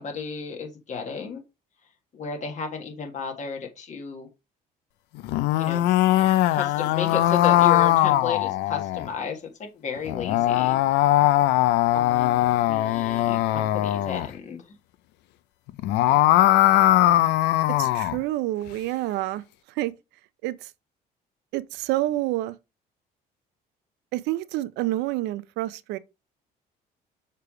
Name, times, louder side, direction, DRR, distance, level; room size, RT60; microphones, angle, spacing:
voice 1, 0.0-1.4 2.1-4.3 5.6-5.9 6.5-10.8 11.9-14.6, left 5 dB, 45° left, 1.8 m, -33 dB
sound 1, 5.2-9.1 10.1-14.3 15.7-18.2, left 14 dB, 90° left, 0.5 m, -20 dB
voice 2, 17.8-19.4 19.8-19.9 20.4-20.7 21.5-22.6 24.1-26.0, right 16 dB, 90° right, 0.5 m, -28 dB
6.7 x 3.4 x 4.9 m
cardioid pair, 110°, 17 cm